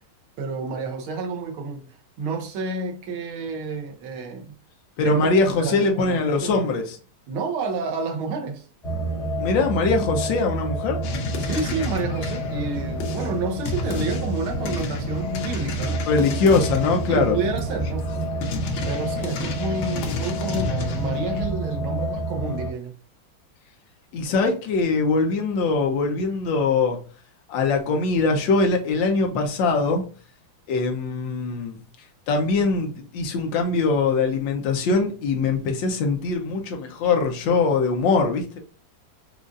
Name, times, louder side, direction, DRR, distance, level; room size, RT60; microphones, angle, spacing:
voice 1, 0.4-1.9 2.2-4.5 5.0-6.7 7.3-8.6 11.4-16.0 17.1-18.6 18.9-22.9, right 3 dB, 80° right, 1.7 m, -30 dB
voice 2, 5.0-7.0 9.4-11.0 16.1-17.4 24.1-27.0 27.5-30.0 30.7-31.8 32.3-38.6, left 4 dB, 70° left, 1.4 m, -22 dB
sound 1, 8.8-22.7, right 2 dB, 50° left, 0.4 m, -29 dB
sound 2, 11.0-21.5, left 3 dB, 85° left, 1.6 m, -31 dB
5.2 x 2.4 x 2.4 m
omnidirectional pair, 2.3 m